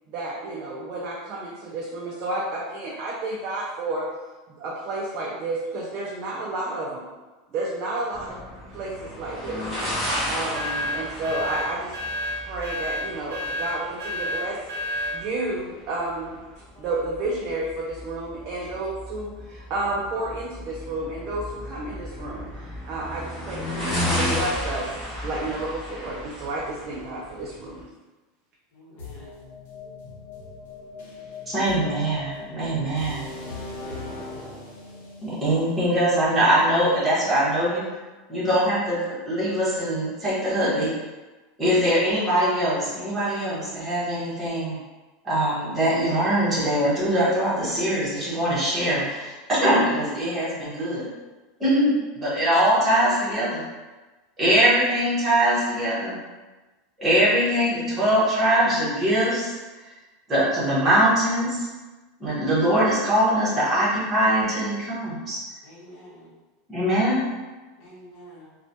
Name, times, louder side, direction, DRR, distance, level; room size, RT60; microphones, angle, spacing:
voice 1, 0.1-4.1 4.6-7.0 7.5-8.4 8.7-12.0 12.4-16.4 16.8-22.5 22.9-24.9 25.2-27.8, right 2 dB, 35° right, -4 dB, 0.4 m, -31 dB
sound 1, 8.1-27.8, left 1 dB, 10° left, 0.8 m, -33 dB
sound 2, 10.5-15.2, left 1 dB, 80° right, 0.7 m, -30 dB
voice 2, 28.7-29.3 33.5-34.2 65.6-66.3 67.8-68.5, equal, 45° left, -6 dB, 1.1 m, -47 dB
sound 3, 29.0-36.9, left 3 dB, 75° left, 0.8 m, -40 dB
voice 3, 31.5-33.2 35.2-37.8 38.3-40.9 41.6-44.8 45.2-49.3 49.6-51.1 51.6-53.6 54.4-56.2 57.0-59.5 60.3-61.7 62.2-65.4 66.7-67.2, right 1 dB, 10° right, -10 dB, 1.0 m, -22 dB
3.0 x 2.2 x 2.7 m, 1.2 s
supercardioid pair, 175°, 0 cm